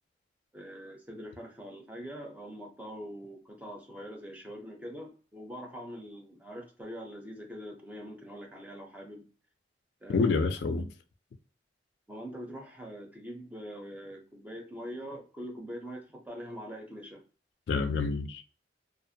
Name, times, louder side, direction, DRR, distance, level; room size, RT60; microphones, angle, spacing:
voice 1, 0.5-9.3 10.0-10.5 12.1-17.2, equal, 10° right, 0.5 m, -43 dB
voice 2, 10.1-10.9 17.7-18.4, left 4 dB, 65° left, 0.3 m, -28 dB
2.4 x 2.0 x 2.6 m
head